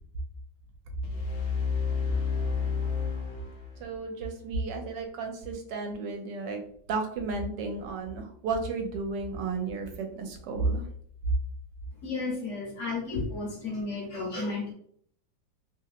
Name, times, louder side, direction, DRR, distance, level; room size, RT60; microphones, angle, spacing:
sound 1, 1.0-4.1, left 6 dB, 70° left, 0.7 m, -30 dB
voice 1, 3.8-6.6 6.9-10.8, right 3 dB, 85° right, 4 dB, 1.3 m, -32 dB
voice 2, 12.0-14.7, left 3 dB, 55° left, -1 dB, 1.0 m, -33 dB
3.1 x 2.8 x 2.4 m, 0.62 s
omnidirectional pair, 1.9 m